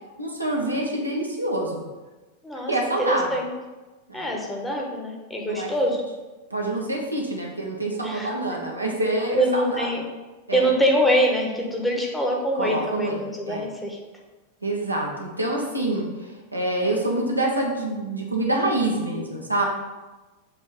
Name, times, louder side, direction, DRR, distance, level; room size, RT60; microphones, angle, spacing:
voice 1, 0.2-1.8 2.7-3.4 4.1-4.3 5.4-5.7 6.5-9.9 10.5-10.7 12.6-13.7 14.6-19.6, right 1 dB, 85° right, -1 dB, 1.2 m, -26 dB
voice 2, 2.4-3.5 4.1-6.0 8.0-8.3 9.3-10.0 10.5-14.0, equal, 5° left, 0 dB, 1.3 m, -24 dB
7.1 x 3.1 x 5.4 m, 1.2 s
figure-of-eight pair, 90°, 0 cm